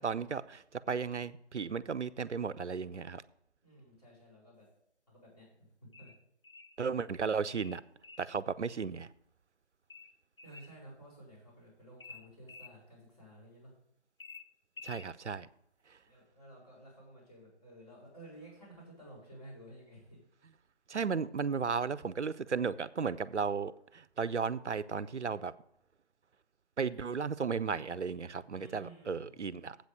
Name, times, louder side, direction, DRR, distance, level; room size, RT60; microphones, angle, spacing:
voice 1, 0.0-3.2 6.8-7.8 8.2-9.1 14.8-15.5 20.9-25.5 26.8-29.8, right 5 dB, 80° right, 18 dB, 0.6 m, -35 dB
voice 2, 3.6-4.7 5.1-5.7 6.0-6.1 10.4-13.7 16.0-20.2 28.5-29.4, right 1 dB, 35° left, -5 dB, 4.6 m, -53 dB
sound 1, 5.9-6.8 7.6-8.3 9.9-10.8 12.0-12.8 14.2-15.1, left 4 dB, 50° left, 0.6 m, -51 dB
8.0 x 6.5 x 6.5 m, 0.76 s
figure-of-eight pair, 165°, 34 cm